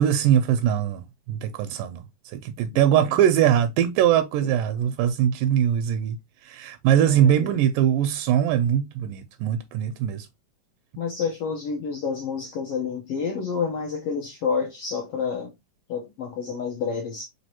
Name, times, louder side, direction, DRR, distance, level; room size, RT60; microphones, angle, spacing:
voice 1, 0.0-2.0 2.3-6.2 6.4-10.3, right 10 dB, 85° right, 2.1 m, -22 dB
voice 2, 2.7-3.1 4.4-4.5 7.0-7.6 11.0-15.5 15.9-17.3, left 5 dB, 80° left, 1.3 m, -29 dB
5.1 x 3.2 x 2.8 m
omnidirectional pair, 3.8 m